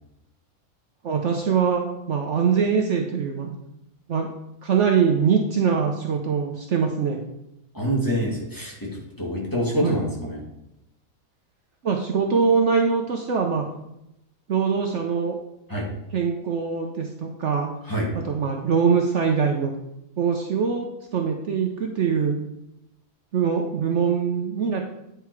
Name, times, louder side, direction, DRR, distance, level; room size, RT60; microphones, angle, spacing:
voice 1, 1.0-3.5 4.1-4.3 4.6-7.2 9.8-10.0 11.8-13.6 14.5-15.4 16.1-17.7 18.2-19.7 20.2-22.4 23.3-24.8, right 6 dB, 60° right, 2 dB, 1.0 m, -23 dB
voice 2, 7.7-10.4 15.7-15.9 17.8-18.1, equal, 15° left, -4 dB, 2.1 m, -26 dB
9.4 x 4.6 x 4.7 m, 0.86 s
omnidirectional pair, 1.6 m